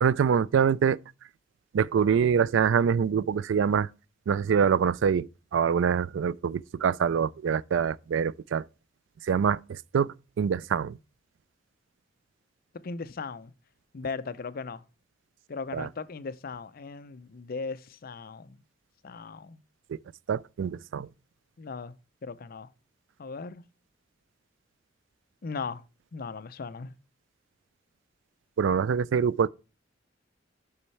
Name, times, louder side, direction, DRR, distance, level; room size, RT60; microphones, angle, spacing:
voice 1, 0.0-1.0 1.7-3.9 4.3-8.6 9.2-11.0 15.7-15.9 19.9-20.0 20.3-21.1 28.6-29.5, right 7 dB, 75° right, 0.3 m, -25 dB
voice 2, 12.8-13.5 13.9-14.8 15.5-18.6 19.0-19.6 21.6-21.9 22.2-22.7 23.2-23.6 25.4-25.8 26.1-26.9, left 4 dB, 50° left, 0.5 m, -37 dB
7.0 x 5.5 x 3.2 m
head